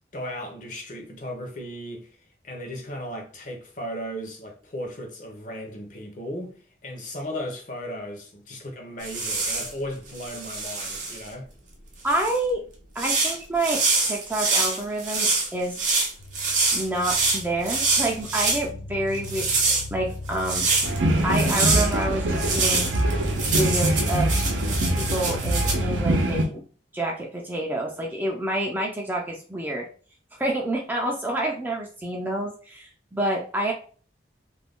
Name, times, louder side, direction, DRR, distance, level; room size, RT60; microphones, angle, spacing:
voice 1, 0.1-2.1 2.4-6.5 6.8-11.5, equal, 45° left, 0.7 m, -36 dB
sound 1, 9.0-9.7 10.1-11.3 12.1-12.4 13.0-18.6 19.1-21.0 21.3-21.9 22.4-25.7, right 3 dB, 45° right, 0.7 m, -25 dB
voice 2, 12.0-12.6 13.0-15.8 16.7-20.7 21.2-22.9 23.3-24.3 24.9-26.6 26.9-29.9 30.3-33.7, right 1 dB, 10° right, 0.4 m, -28 dB
sound 2, 16.2-26.2, left 1 dB, 85° left, 0.4 m, -35 dB
sound 3, 20.8-26.4, right 1 dB, 80° right, 0.6 m, -24 dB
2.5 x 2.2 x 3.5 m
head